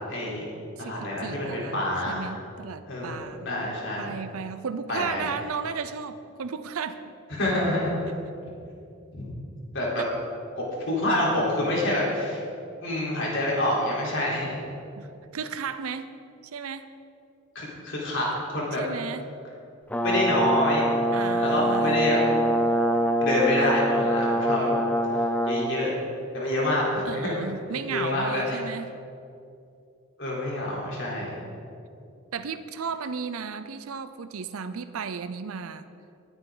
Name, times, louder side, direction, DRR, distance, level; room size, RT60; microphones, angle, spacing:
voice 1, 0.1-0.5 0.8-2.3 2.9-4.1 4.9-5.3 7.3-7.9 9.1-9.3 9.7-10.0 10.6-12.4 12.8-14.6 17.6-18.8 20.0-20.9 21.4-22.2 23.2-24.7 25.5-26.0 26.3-27.4 27.9-28.6 30.2-31.4, left 1 dB, 60° left, -4 dB, 3.7 m, -27 dB
voice 2, 0.8-3.5 4.0-7.1 10.0-10.1 15.0-16.2 16.5-16.9 18.7-19.2 21.1-22.0 27.1-28.9 32.3-35.9, right 6 dB, 80° right, 11 dB, 0.5 m, -34 dB
Brass instrument, 19.9-25.7, right 1 dB, 5° left, 0.6 m, -24 dB
20.0 x 9.2 x 3.9 m, 2.6 s
head